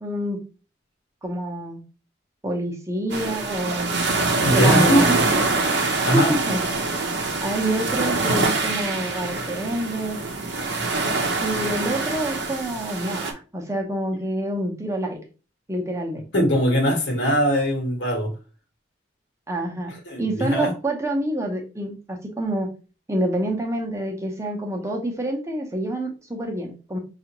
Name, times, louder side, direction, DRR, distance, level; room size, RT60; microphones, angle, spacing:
voice 1, 0.0-0.4 1.2-1.8 2.4-4.0 4.5-5.4 6.1-6.9 7.4-10.3 11.4-15.2 15.7-16.2 19.5-19.9 20.2-22.7 23.1-27.0, right 1 dB, 15° right, 2 dB, 0.7 m, -27 dB
sound 1, 3.1-13.3, right 3 dB, 60° right, 0.7 m, -24 dB
voice 2, 4.4-5.0 6.0-6.3 16.3-18.3 20.1-20.7, equal, 65° left, 2 dB, 1.1 m, -20 dB
5.5 x 2.4 x 2.9 m, 0.34 s
head